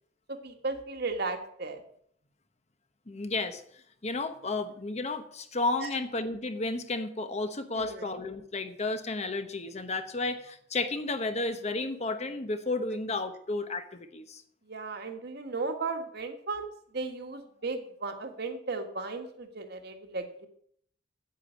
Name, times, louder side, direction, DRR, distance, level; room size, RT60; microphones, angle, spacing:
voice 1, 0.3-1.8 5.8-5.9 7.7-8.1 14.7-16.7 16.9-20.5, right 3 dB, 55° right, 6 dB, 1.6 m, -35 dB
voice 2, 3.1-3.6 4.0-14.4, left 3 dB, 35° left, 9 dB, 1.1 m, -32 dB
9.6 x 8.7 x 7.6 m, 0.66 s
head